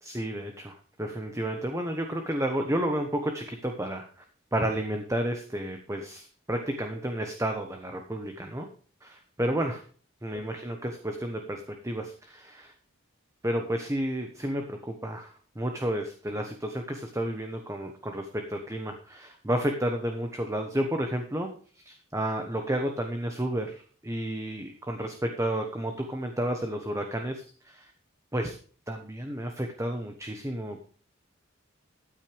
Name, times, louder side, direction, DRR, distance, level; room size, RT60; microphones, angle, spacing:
voice 1, 0.0-4.2 4.5-8.7 9.0-9.8 10.2-12.7 13.4-21.5 21.7-27.9 28.3-28.6 28.9-30.9, right 1 dB, 15° right, 5 dB, 1.1 m, -31 dB
13.5 x 9.2 x 3.4 m, 0.41 s
head